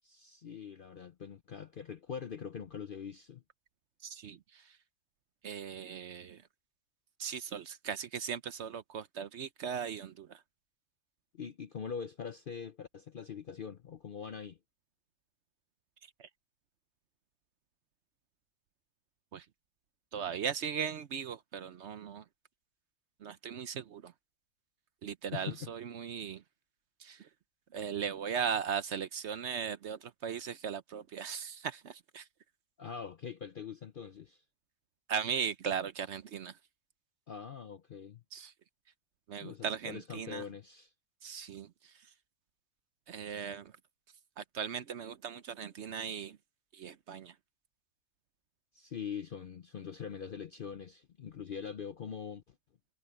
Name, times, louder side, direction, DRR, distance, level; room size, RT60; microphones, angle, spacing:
voice 1, 0.0-3.4 11.3-14.6 25.3-25.7 32.8-34.4 37.3-38.2 39.4-40.9 48.7-52.4, left 7 dB, 55° left, 0.6 m, -43 dB
voice 2, 4.0-4.6 5.4-6.4 7.2-10.4 16.2-16.3 19.3-19.4 20.1-22.2 23.2-24.1 25.0-26.4 27.0-27.3 27.7-32.2 35.1-36.5 38.3-38.5 39.3-40.4 41.2-41.7 43.1-43.7 44.4-46.4 46.7-47.3, right 7 dB, 60° right, 0.9 m, -38 dB
omnidirectional pair, 1.5 m